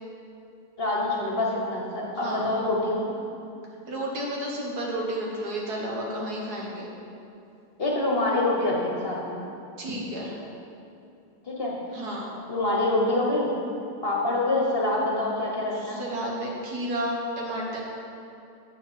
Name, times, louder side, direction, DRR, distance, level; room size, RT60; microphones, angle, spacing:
voice 1, 0.8-3.1 7.8-9.4 11.5-11.8 12.5-13.5 14.0-16.0, left 2 dB, 40° left, -3 dB, 1.3 m, -26 dB
voice 2, 3.9-6.9 9.8-10.4 11.9-12.3 15.7-17.8, right 1 dB, 70° right, -3 dB, 2.0 m, -31 dB
7.3 x 6.4 x 7.2 m, 2.7 s
omnidirectional pair, 1.8 m